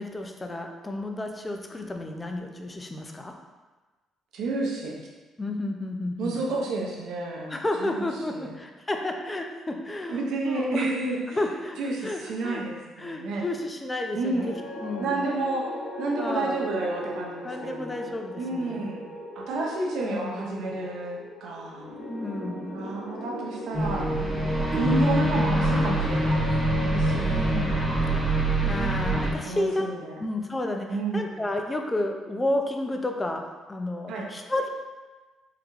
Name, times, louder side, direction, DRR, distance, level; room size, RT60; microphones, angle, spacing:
voice 1, 0.0-3.4 5.4-6.4 7.5-10.9 11.3-12.6 13.0-15.3 16.2-16.6 17.4-18.9 20.0-20.5 22.1-22.8 27.3-27.8 28.2-28.3 28.6-29.9 30.2-34.7, left 1 dB, 20° left, 4 dB, 0.4 m, -31 dB
voice 2, 4.3-4.9 6.2-8.1 8.3-8.5 10.1-11.4 11.8-13.4 14.2-14.5 15.0-15.7 16.0-18.0 18.4-19.0 19.4-21.9 22.7-24.1 24.7-27.5 29.4-30.2 30.9-31.3 34.1-34.3, right 2 dB, 75° right, -2 dB, 0.6 m, -30 dB
sound 1, 14.2-30.5, left 1 dB, 75° left, 0.6 m, -40 dB
sound 2, 23.7-29.3, right 1 dB, 15° right, 0.9 m, -24 dB
3.8 x 2.2 x 3.0 m, 1.3 s
supercardioid pair, 75°, 0 cm